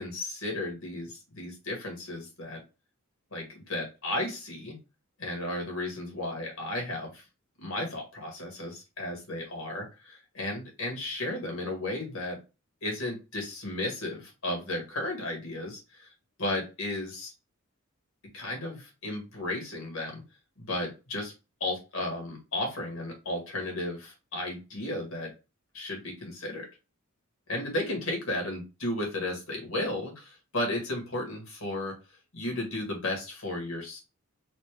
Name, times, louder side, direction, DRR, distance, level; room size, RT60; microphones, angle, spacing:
voice 1, 0.0-2.6 3.3-4.8 5.2-7.2 7.6-12.4 12.8-16.1 16.4-17.3 18.3-20.2 20.6-21.3 21.6-25.3 25.7-26.7 27.5-31.9 32.3-34.0, left 1 dB, 70° left, 1 dB, 1.9 m, -34 dB
4.2 x 2.7 x 3.4 m, 0.28 s
head